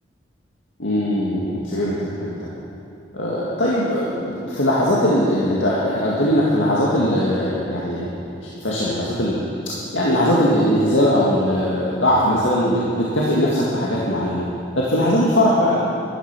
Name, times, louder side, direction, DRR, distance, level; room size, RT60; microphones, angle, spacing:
voice 1, 0.8-2.5 3.1-9.3 9.9-14.4 14.8-15.8, equal, 80° left, -6 dB, 2.0 m, -20 dB
12.5 x 12.5 x 6.1 m, 2.9 s
head